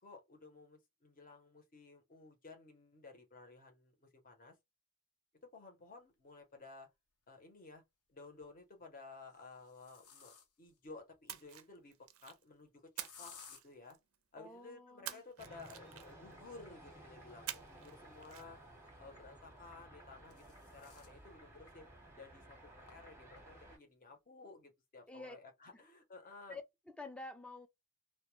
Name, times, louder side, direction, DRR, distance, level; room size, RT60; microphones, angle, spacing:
voice 1, 0.0-4.6 5.4-6.9 7.3-7.8 8.1-12.0 12.2-14.0 14.3-18.6 19.0-21.9 22.2-26.6, left 3 dB, 40° left, 0.7 m, -55 dB
sound 1, 6.7-6.8 8.2-8.6 9.2-10.8 13.0-13.6 16.2-18.8 19.8-21.2 21.7-21.8 22.1-22.2 22.9-23.0 23.4-23.7, left 6 dB, 85° left, 0.7 m, -60 dB
Splash splatter, 11.3-12.4 13.0-14.1 15.0-16.3 17.5-18.0 18.2-18.4, right 12 dB, 70° right, 0.4 m, -47 dB
voice 2, 14.4-15.2 25.1-25.4 25.7-25.8 26.5-27.7, left 2 dB, 5° left, 0.3 m, -49 dB
sound 2, 15.4-23.8, right 1 dB, 10° right, 0.7 m, -57 dB
2.1 x 2.1 x 2.9 m
head